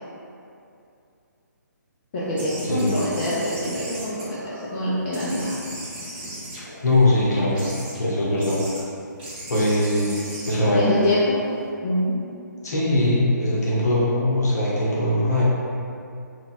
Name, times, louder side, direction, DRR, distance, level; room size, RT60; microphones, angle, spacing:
voice 1, 2.1-5.5 10.7-11.4 11.8-12.2, left 1 dB, 35° left, -9 dB, 0.4 m, -24 dB
sound 1, 2.3-4.8 5.1-7.1 7.5-8.0 8.4-8.8 9.2-11.7, right 1 dB, 30° right, 0.7 m, -37 dB
voice 2, 2.6-3.0 6.8-7.6 8.0-8.6 9.5-10.2 10.5-10.9 12.6-15.4, left 1 dB, 60° left, -6 dB, 0.9 m, -21 dB
3.7 x 2.2 x 2.3 m, 2.5 s
figure-of-eight pair, 140°, 10 cm